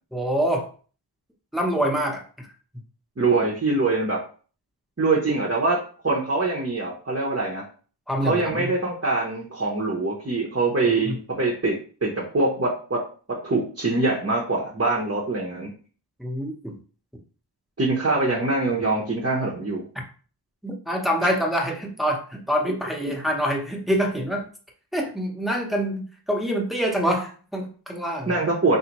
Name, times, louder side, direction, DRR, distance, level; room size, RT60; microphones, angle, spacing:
voice 1, 0.1-0.7 1.5-2.5 8.1-8.7 10.9-11.2 16.2-16.8 20.6-24.5 24.9-28.3, equal, ahead, -1 dB, 0.9 m, -26 dB
voice 2, 3.2-4.2 5.0-7.6 8.2-13.0 13.4-15.7 17.8-19.8 28.3-28.8, right 3 dB, 35° right, -3 dB, 0.9 m, -24 dB
3.9 x 2.8 x 3.0 m, 0.40 s
wide cardioid pair, 60°, 42 cm